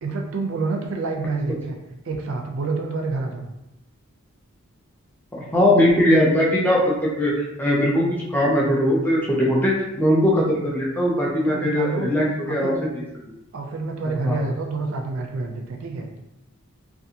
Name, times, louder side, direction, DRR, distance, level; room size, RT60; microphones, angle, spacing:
voice 1, 0.0-1.8 2.1-3.5 11.5-12.1 12.5-12.9 13.5-16.1, right 3 dB, 60° right, 2 dB, 0.4 m, -28 dB
voice 2, 5.3-7.3 7.6-12.8 14.2-14.5, left 1 dB, 10° left, -4 dB, 0.4 m, -20 dB
2.6 x 2.4 x 2.7 m, 0.91 s
head